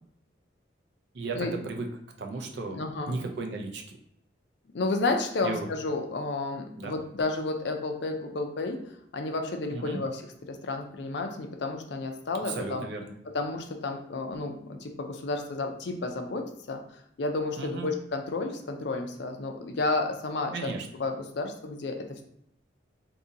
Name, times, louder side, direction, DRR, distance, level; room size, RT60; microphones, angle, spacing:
voice 1, 1.1-1.9 2.2-2.8 3.1-4.0 5.4-5.7 6.8-6.9 9.7-10.0 12.4-13.1 17.6-17.9 20.5-20.9, right 3 dB, 60° right, 3 dB, 0.5 m, -35 dB
voice 2, 2.7-3.2 4.7-8.8 9.1-10.2 10.5-12.8 13.3-16.8 17.2-20.7 21.0-22.2, left 3 dB, 60° left, 5 dB, 0.4 m, -31 dB
2.7 x 2.7 x 3.7 m, 0.73 s
head